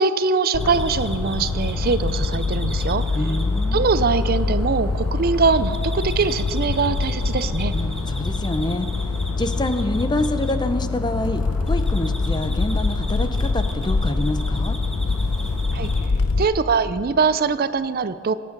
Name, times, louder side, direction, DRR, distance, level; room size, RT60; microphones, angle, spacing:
voice 1, 0.0-3.0 3.7-7.7 15.7-15.9 16.4-18.3, right 4 dB, 45° right, 13 dB, 0.5 m, -22 dB
sound 1, 0.5-16.4, left 3 dB, 85° left, 0.7 m, -24 dB
sound 2, 0.6-16.1, equal, ahead, 1.3 m, -37 dB
voice 2, 3.1-3.8 7.7-14.8, left 1 dB, 20° left, 10 dB, 0.6 m, -27 dB
24.0 x 9.7 x 5.2 m, 2.6 s
head